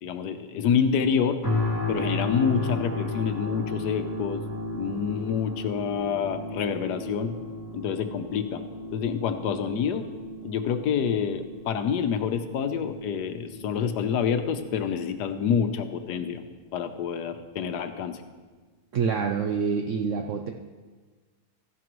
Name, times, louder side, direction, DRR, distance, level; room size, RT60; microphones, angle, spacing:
voice 1, 0.0-1.4 1.9-4.4 4.7-7.4 7.7-8.6 8.9-10.0 10.4-16.4 16.7-18.2, left 7 dB, 85° left, 8 dB, 1.3 m, -27 dB
sound 1, 1.4-16.4 16.9-17.1, left 2 dB, 10° left, 2.3 m, -35 dB
voice 2, 18.9-20.5, right 5 dB, 65° right, 4 dB, 0.8 m, -26 dB
14.5 x 11.0 x 3.1 m, 1.4 s
omnidirectional pair, 1.7 m